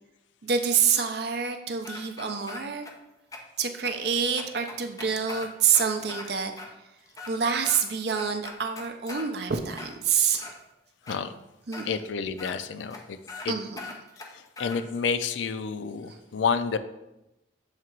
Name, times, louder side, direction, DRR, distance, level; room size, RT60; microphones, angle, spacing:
voice 1, 0.4-2.8 3.6-6.5 7.3-10.5 11.7-11.9 13.5-13.8 16.1-16.2, right 6 dB, 55° right, 6 dB, 0.5 m, -27 dB
sound 1, 1.8-2.9 3.3-3.4 3.8-3.9 4.4-6.3 6.6-6.7 7.1-7.8 8.1-9.3 9.7-10.5 11.1-11.2 11.7-11.9 12.4-12.5 12.9-13.0 13.3-13.5 13.8-14.8, left 3 dB, 20° left, 0.6 m, -40 dB
voice 2, 11.9-13.2 13.4-13.5 14.6-16.8, left 6 dB, 75° left, 10 dB, 0.4 m, -29 dB
7.3 x 2.9 x 4.5 m, 0.93 s
head